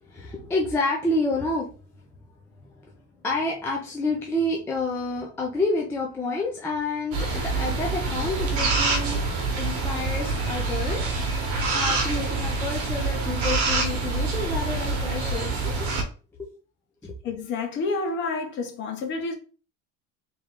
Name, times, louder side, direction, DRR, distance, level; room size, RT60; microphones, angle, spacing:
voice 1, 0.1-1.7 2.8-2.9 3.2-9.2 9.6-15.5 15.8-15.9 17.0-17.1, left 2 dB, 10° left, 0.4 m, -29 dB
sound 1, 7.1-16.0, right 3 dB, 50° right, 1.1 m, -26 dB
voice 2, 17.2-19.4, left 3 dB, 40° left, 1.0 m, -29 dB
3.5 x 3.1 x 3.6 m
cardioid pair, 180°, 29 cm